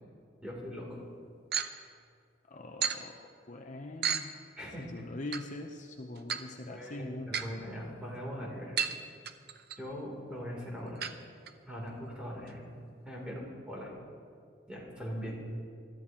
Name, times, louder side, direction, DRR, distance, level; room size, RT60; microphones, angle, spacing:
voice 1, 0.4-1.0 4.6-4.8 6.7-8.8 9.8-11.0 11.7-12.6 13.0-13.9 14.7-15.4, equal, 5° right, -4 dB, 3.2 m, -41 dB
sound 1, 1.5-1.7 2.8-3.0 4.0-4.2 5.3-5.4 6.2-6.4 7.3-7.5 8.8-9.0 9.3-9.8 11.0-11.1 11.5-11.6 11.9-12.0 12.5-12.6, right 7 dB, 55° right, 0.7 m, -32 dB
voice 2, 2.5-3.2 3.5-4.4 4.8-7.3, left 2 dB, 40° left, 3 dB, 0.7 m, -42 dB
22.0 x 13.0 x 3.0 m, 2.3 s
head